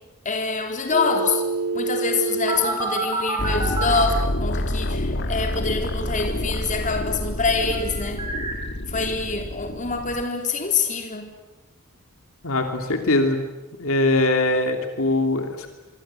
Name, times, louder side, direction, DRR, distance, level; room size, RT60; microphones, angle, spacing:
voice 1, 0.3-1.4 1.7-8.2 8.9-11.3, left 4 dB, 35° left, 4 dB, 3.8 m, -25 dB
sound 1, 0.9-4.0 7.7-8.5, right 3 dB, 20° right, 5.2 m, -27 dB
sound 2, 3.4-10.2, left 1 dB, 50° left, 1.7 m, -28 dB
voice 2, 12.4-13.4 13.8-15.7, left 2 dB, 70° left, 5 dB, 2.9 m, -21 dB
26.0 x 24.0 x 9.0 m, 1.1 s
head